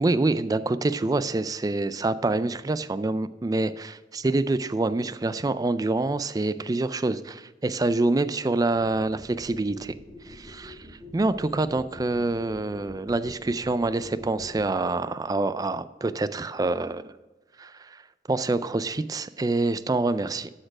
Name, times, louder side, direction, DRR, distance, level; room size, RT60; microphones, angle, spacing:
voice 1, 0.0-9.9 10.2-10.9 11.1-17.1 17.6-18.0 18.3-20.5, right 2 dB, 20° right, 14 dB, 0.3 m, -26 dB
sound 1, 9.1-14.7, left 1 dB, 5° right, 1.6 m, -45 dB
12.5 x 4.4 x 6.0 m, 1.2 s
head